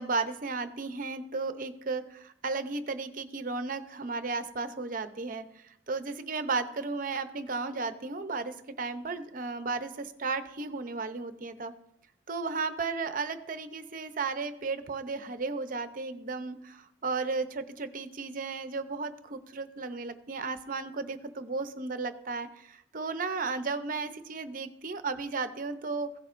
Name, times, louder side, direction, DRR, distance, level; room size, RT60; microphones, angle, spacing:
voice 1, 0.0-5.4 5.9-11.7 12.3-26.1, right 4 dB, 45° right, 9 dB, 0.7 m, -34 dB
16.0 x 7.2 x 2.6 m, 0.78 s
head